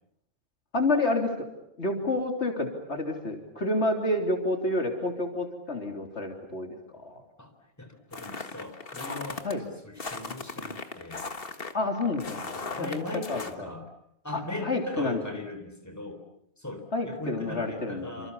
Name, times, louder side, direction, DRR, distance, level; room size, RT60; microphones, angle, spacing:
voice 1, 0.7-1.5 1.8-7.2 9.4-9.6 11.7-12.4 12.8-13.7 14.3-15.2 16.9-18.3, left 2 dB, 70° left, 4 dB, 3.7 m, -29 dB
voice 2, 7.8-11.2 12.3-13.9 14.2-16.2 16.6-18.3, left 2 dB, 15° left, 6 dB, 3.9 m, -39 dB
sound 1, 8.1-9.5 10.0-13.5, left 3 dB, 55° left, 1.9 m, -38 dB
28.0 x 26.5 x 7.2 m, 0.73 s
omnidirectional pair, 1.2 m